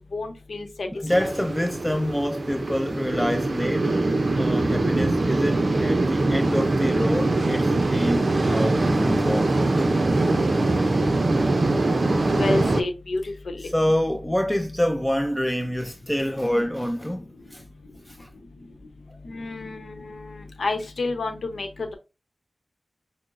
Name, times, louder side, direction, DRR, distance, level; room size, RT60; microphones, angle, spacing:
voice 1, 0.1-0.9 1.2-1.3 12.4-13.7 19.2-21.9, left 2 dB, 80° left, 0.8 m, -29 dB
voice 2, 1.0-3.9 4.4-9.9 13.6-17.6 18.1-18.3, equal, 10° left, 0.4 m, -26 dB
sound 1, 1.1-12.8, right 2 dB, 50° right, 0.5 m, -22 dB
5.8 x 2.1 x 2.5 m
wide cardioid pair, 70°, 0 cm